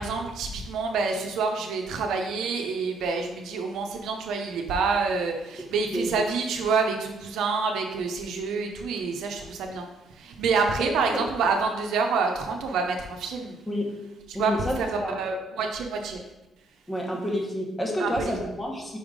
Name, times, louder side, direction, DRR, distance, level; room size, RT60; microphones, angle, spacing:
voice 1, 0.0-13.6 14.3-16.2 18.0-18.6, right 4 dB, 80° right, 3 dB, 0.7 m, -27 dB
voice 2, 14.3-15.2 16.9-19.0, equal, 15° left, -1 dB, 1.5 m, -29 dB
5.4 x 3.5 x 5.0 m, 0.99 s
cardioid pair, 90°, 0 cm